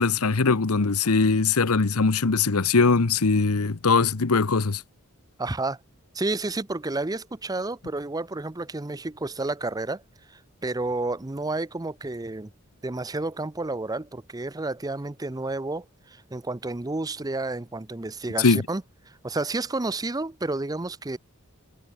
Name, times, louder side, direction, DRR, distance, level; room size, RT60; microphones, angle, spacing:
voice 1, 0.0-4.8 18.4-18.6, left 4 dB, 85° left, 1.0 m, -21 dB
voice 2, 5.4-5.8 6.1-10.0 10.6-12.5 12.8-15.8 16.1-18.8 19.2-21.2, right 2 dB, 15° right, 0.6 m, -30 dB
head